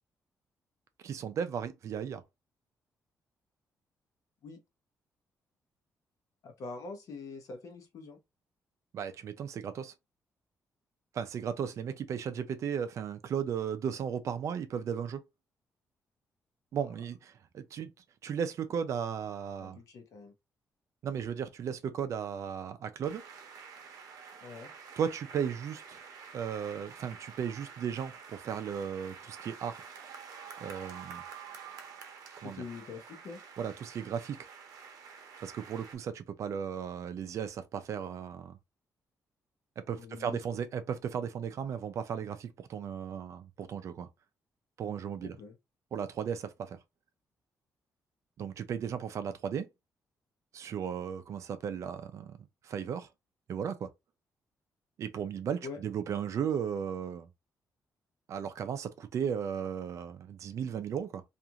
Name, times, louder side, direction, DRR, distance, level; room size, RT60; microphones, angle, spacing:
voice 1, 1.0-2.2 8.9-9.9 11.1-15.2 16.7-17.9 18.2-19.8 21.0-23.2 25.0-26.0 26.3-29.8 30.6-31.2 32.4-32.6 33.6-34.5 35.4-38.6 39.8-44.1 44.8-45.4 45.9-46.8 48.4-49.7 50.5-52.4 52.6-53.1 53.5-53.9 55.0-57.3 58.3-61.2, right 8 dB, 55° right, 0.4 m, -35 dB
voice 2, 6.4-8.2 19.6-20.3 24.4-24.7 32.4-33.4 39.9-40.4 45.2-45.6 55.6-55.8, left 4 dB, 65° left, 0.8 m, -44 dB
sound 1, 23.0-36.0, right 6 dB, 90° right, 0.7 m, -49 dB
2.5 x 2.4 x 2.8 m
cardioid pair, 160°, 6 cm